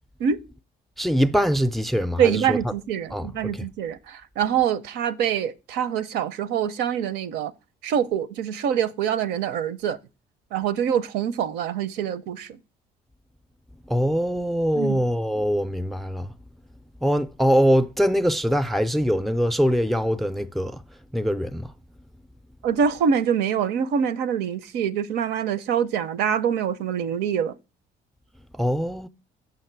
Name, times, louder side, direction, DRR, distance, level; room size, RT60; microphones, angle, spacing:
voice 1, 1.0-2.6 3.1-3.7 13.9-16.3 17.0-20.8 21.1-21.7 28.5-29.1, equal, ahead, 0.4 m, -23 dB
voice 2, 2.2-7.5 7.8-10.0 10.5-12.6 14.7-15.0 22.6-27.5, right 8 dB, 80° right, 0.6 m, -25 dB
6.4 x 5.8 x 4.5 m
cardioid pair, 110°, 17 cm